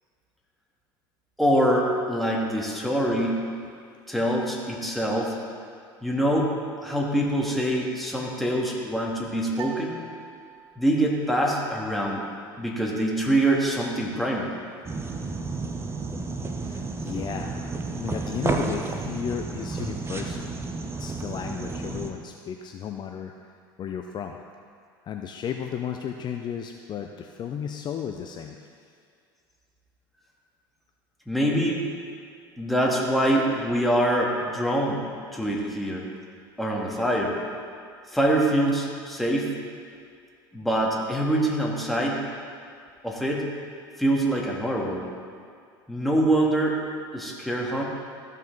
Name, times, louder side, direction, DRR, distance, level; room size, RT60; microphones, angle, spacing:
voice 1, 1.4-3.4 4.1-5.4 6.0-6.5 6.8-10.0 10.8-12.2 12.6-14.5 31.3-31.8 32.6-35.0 35.3-36.0 36.6-37.3 38.1-39.5 40.5-42.2 43.0-43.5 44.0-45.1 45.9-46.8 47.1-47.8, right 1 dB, ahead, -3 dB, 1.8 m, -24 dB
sound 1, 9.5-11.0, right 5 dB, 65° right, 0.7 m, -42 dB
sound 2, 14.8-22.1, right 3 dB, 20° right, 0.9 m, -31 dB
voice 2, 16.6-20.5 21.0-23.3 23.8-24.4 25.0-28.6 35.4-35.5, left 8 dB, 40° left, 4 dB, 0.5 m, -34 dB
14.0 x 5.4 x 3.9 m, 2.3 s
hypercardioid pair, 90°, 12 cm